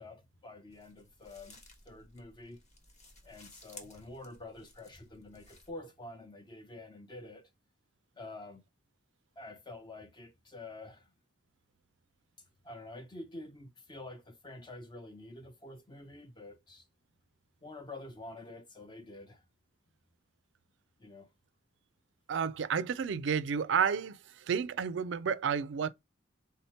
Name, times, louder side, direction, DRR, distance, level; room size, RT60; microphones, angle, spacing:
voice 1, 0.0-1.6 1.9-2.6 3.2-7.5 8.2-8.6 9.4-11.1 12.6-16.9 17.6-19.4 21.0-21.3, left 2 dB, 25° left, 0.5 m, -48 dB
sound 1, 0.7-5.7, left 2 dB, 40° left, 1.2 m, -57 dB
voice 2, 22.3-24.2 24.5-25.9, right 7 dB, 70° right, 0.4 m, -31 dB
3.7 x 2.8 x 4.3 m
head